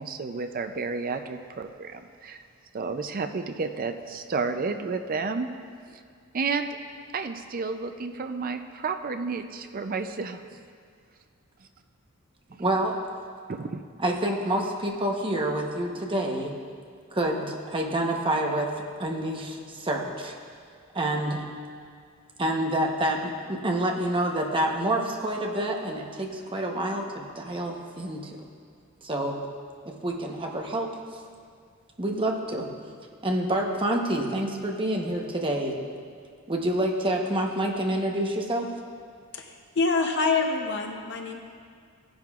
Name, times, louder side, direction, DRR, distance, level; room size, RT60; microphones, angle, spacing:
voice 1, 0.0-2.4 2.7-5.5 5.9-6.0 6.3-6.7 7.1-10.6 13.5-13.8, right 4 dB, 40° right, 8 dB, 0.4 m, -31 dB
voice 2, 12.6-13.0 14.0-16.5 17.1-18.7 19.0-20.3 20.9-21.4 22.4-28.4 29.0-29.4 29.8-31.0 32.0-32.7 33.2-35.8 36.5-38.7, right 1 dB, 25° right, 1 dB, 0.9 m, -27 dB
voice 3, 39.3-41.4, left 4 dB, 50° left, 4 dB, 0.7 m, -26 dB
16.5 x 10.5 x 2.4 m, 2.2 s
head